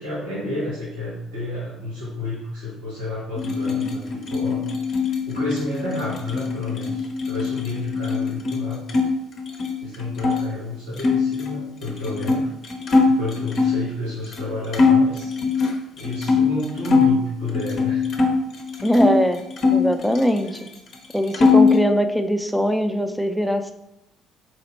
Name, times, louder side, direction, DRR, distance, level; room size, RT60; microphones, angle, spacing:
voice 1, 0.0-4.6 5.2-8.8 9.8-12.5 13.1-15.3 15.9-18.1, left 2 dB, 90° right, -8 dB, 1.7 m, -30 dB
sound 1, 3.4-9.1 9.4-10.4 11.0-13.8 14.3-14.4 14.7-17.2 17.5-19.2 19.6-20.7 20.9-21.8, left 4 dB, 50° left, 0.7 m, -21 dB
voice 2, 18.8-19.4 19.7-20.5 21.1-23.7, equal, 5° left, 7 dB, 0.5 m, -21 dB
4.2 x 2.8 x 4.1 m, 0.87 s
hypercardioid pair, 50°, 0 cm